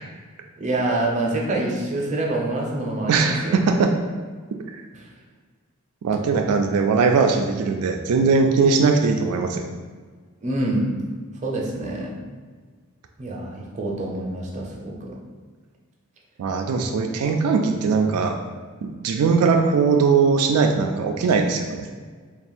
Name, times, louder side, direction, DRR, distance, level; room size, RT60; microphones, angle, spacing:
voice 1, 0.6-3.6 4.9-5.1 10.4-10.9 11.4-12.1 13.2-15.2, right 2 dB, 35° right, -2 dB, 0.6 m, -26 dB
voice 2, 3.1-3.9 6.0-9.7 16.4-18.4 18.8-21.9, right 4 dB, 85° right, 3 dB, 0.3 m, -20 dB
3.4 x 2.3 x 4.3 m, 1.5 s
head